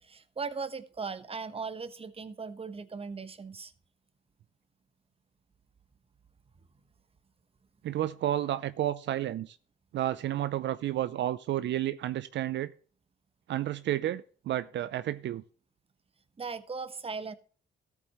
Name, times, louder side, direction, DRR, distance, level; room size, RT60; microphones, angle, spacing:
voice 1, 0.0-3.7 16.4-17.3, right 5 dB, 30° right, 1.1 m, -38 dB
voice 2, 7.8-9.6 9.9-12.7 13.5-15.4, right 13 dB, 65° right, 0.5 m, -31 dB
14.0 x 8.3 x 3.1 m
cardioid pair, 90°, 20 cm